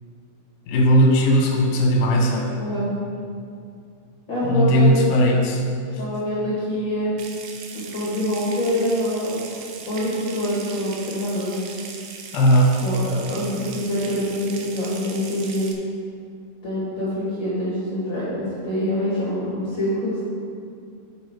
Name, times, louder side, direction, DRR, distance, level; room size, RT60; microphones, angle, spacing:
voice 1, 0.7-2.5 4.4-5.6 5.9-6.0 12.3-12.8, equal, 75° left, 0 dB, 2.4 m, -17 dB
voice 2, 2.6-2.9 4.3-5.0 6.0-7.1 7.7-11.6 12.8-15.7 16.6-20.2, left 1 dB, 45° left, -8 dB, 1.6 m, -25 dB
Water tap faucet / Sink (filling or washing) / Trickle dribble, 7.2-15.7, right 5 dB, 85° right, 1.7 m, -39 dB
8.2 x 7.5 x 4.6 m, 2.4 s
omnidirectional pair, 4.7 m